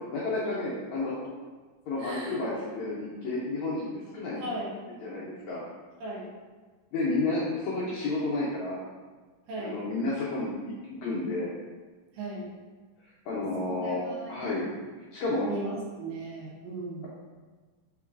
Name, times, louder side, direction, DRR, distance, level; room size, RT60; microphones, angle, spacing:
voice 1, 0.1-1.2 1.9-4.5 4.9-5.6 6.9-8.8 9.6-11.5 13.3-14.0 14.3-14.7 15.1-15.5, left 2 dB, 85° left, -7 dB, 1.6 m, -31 dB
voice 2, 2.0-2.3 4.4-4.7 6.0-6.3 9.5-9.8 12.2-12.5 13.6-14.5 15.4-15.7 16.0-17.1, right 1 dB, 80° right, -4 dB, 2.6 m, -37 dB
5.3 x 3.7 x 2.4 m, 1.4 s
omnidirectional pair, 4.0 m